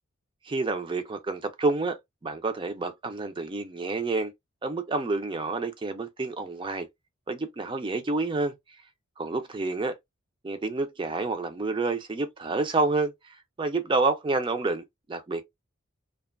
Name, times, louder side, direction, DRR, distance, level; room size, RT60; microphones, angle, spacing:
voice 1, 0.4-4.3 4.6-6.9 7.3-8.5 9.2-9.9 10.4-15.4, right 3 dB, 25° right, 0.4 m, -29 dB
2.5 x 2.2 x 2.3 m
head